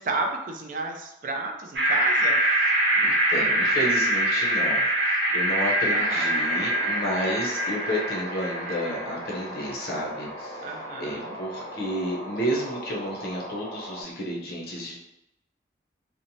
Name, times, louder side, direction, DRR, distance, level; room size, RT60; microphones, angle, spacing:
voice 1, 0.0-2.4 5.9-6.3 10.6-11.3, right 3 dB, 45° right, 3 dB, 0.3 m, -32 dB
sound 1, 1.7-10.0, right 1 dB, 80° right, 1.0 m, -24 dB
voice 2, 3.0-10.6 11.0-15.0, equal, 55° left, -3 dB, 0.6 m, -31 dB
sound 2, 6.0-14.0, equal, 10° left, 0.7 m, -39 dB
2.9 x 2.0 x 2.6 m, 0.88 s
head